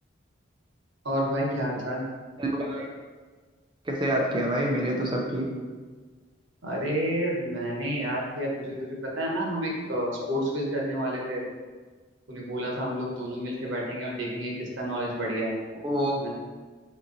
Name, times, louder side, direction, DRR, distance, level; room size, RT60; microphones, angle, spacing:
voice 1, 1.0-2.0 6.6-11.4 12.3-15.5 16.2-16.3, equal, 85° right, -2 dB, 1.1 m, -30 dB
voice 2, 2.4-2.9 3.9-5.5 15.8-16.2, right 1 dB, 25° right, -1 dB, 0.5 m, -27 dB
4.5 x 3.8 x 2.6 m, 1.4 s
head